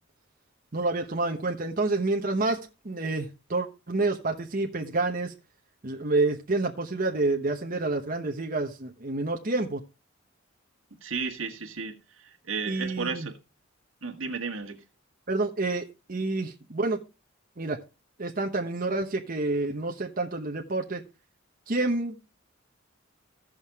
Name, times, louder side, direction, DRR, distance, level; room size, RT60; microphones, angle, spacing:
voice 1, 0.7-2.6 2.8-5.3 5.8-9.8 12.7-13.3 15.3-17.0 17.6-17.8 18.2-21.0 21.7-22.2, right 2 dB, 45° right, 1.0 m, -28 dB
voice 2, 11.0-13.4 14.0-14.8, right 5 dB, 80° right, 1.7 m, -34 dB
16.0 x 6.3 x 3.6 m
head